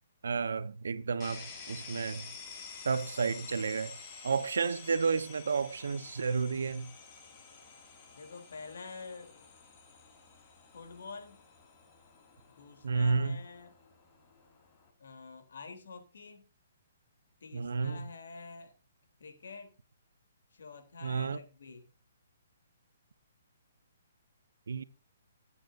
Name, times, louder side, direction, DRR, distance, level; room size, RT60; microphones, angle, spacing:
voice 1, 0.2-2.3 2.8-4.0 4.2-6.9 12.8-13.4 17.5-18.0 21.0-21.4 24.7-24.8, right 5 dB, 85° right, 1.1 m, -31 dB
sound 1, 1.2-14.9, left 5 dB, 20° left, 2.5 m, -50 dB
voice 2, 8.1-9.5 10.7-11.4 12.5-13.7 15.0-16.5 17.4-18.7 19.2-19.7 20.5-21.8, left 4 dB, 75° left, 3.7 m, -47 dB
20.0 x 8.6 x 2.7 m
hypercardioid pair, 170°, 0 cm